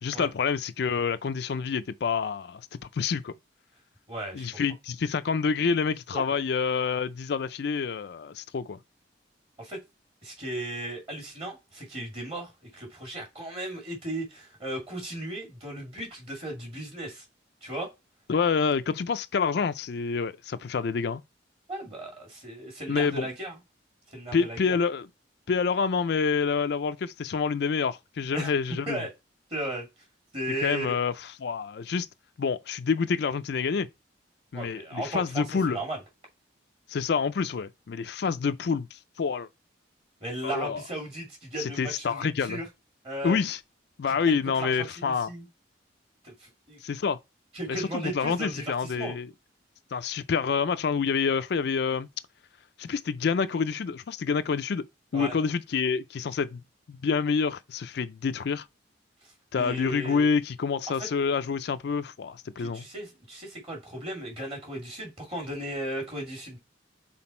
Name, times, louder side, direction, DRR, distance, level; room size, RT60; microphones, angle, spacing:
voice 1, 0.0-2.7 2.9-3.3 4.3-8.8 18.3-21.2 22.9-23.3 24.3-25.1 25.5-29.0 30.6-31.1 31.4-32.1 32.4-33.9 34.5-35.8 36.9-39.5 40.4-40.8 41.6-42.6 43.2-43.6 44.0-45.3 46.8-47.2 47.7-49.3 49.9-52.1 52.8-54.9 55.1-56.6 56.9-58.7 59.5-62.9, left 5 dB, 60° left, 0.4 m, -27 dB
voice 2, 4.1-4.6 6.1-6.2 9.6-9.8 10.2-17.2 17.6-17.9 21.7-23.5 24.1-24.8 28.3-28.5 28.9-29.1 29.5-29.9 30.3-31.0 34.5-36.0 40.2-42.6 43.0-43.4 44.1-45.5 46.2-46.8 47.5-49.2 55.1-55.4 59.5-60.3 61.0-61.1 62.6-66.6, right 1 dB, 30° right, 2.4 m, -36 dB
5.9 x 3.9 x 4.3 m
head